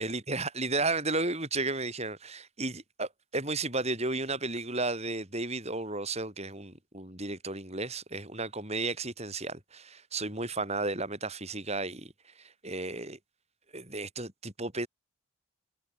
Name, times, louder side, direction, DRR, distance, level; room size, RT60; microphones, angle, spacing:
voice 1, 0.0-13.2 13.7-14.9, right 2 dB, 30° right, 7.0 m, -33 dB
head